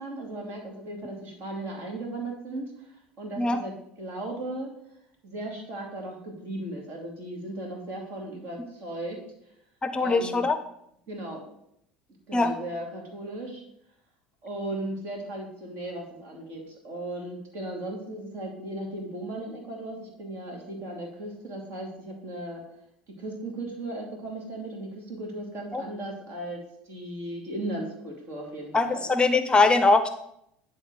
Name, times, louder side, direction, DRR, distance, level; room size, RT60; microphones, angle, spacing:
voice 1, 0.0-2.9 3.2-3.7 4.0-4.7 5.2-9.2 10.0-10.5 11.1-11.4 12.3-13.6 14.4-22.6 23.2-29.0, right 1 dB, 55° right, 0 dB, 2.5 m, -36 dB
voice 2, 9.8-10.6 12.3-12.5 25.7-25.8 28.7-30.1, left 3 dB, 20° left, 10 dB, 0.6 m, -22 dB
10.0 x 3.6 x 4.8 m, 0.75 s
hypercardioid pair, 80°, 5 cm